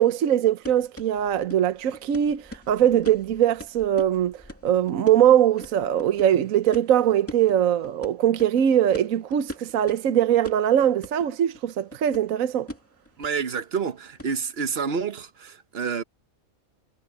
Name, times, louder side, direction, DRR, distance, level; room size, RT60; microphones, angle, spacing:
voice 1, 0.0-12.7, right 10 dB, 70° right, 1.2 m, -21 dB
sound 1, 0.6-14.5, left 1 dB, 10° left, 2.2 m, -44 dB
voice 2, 13.2-16.0, right 6 dB, 50° right, 1.2 m, -28 dB
omnidirectional pair, 1.5 m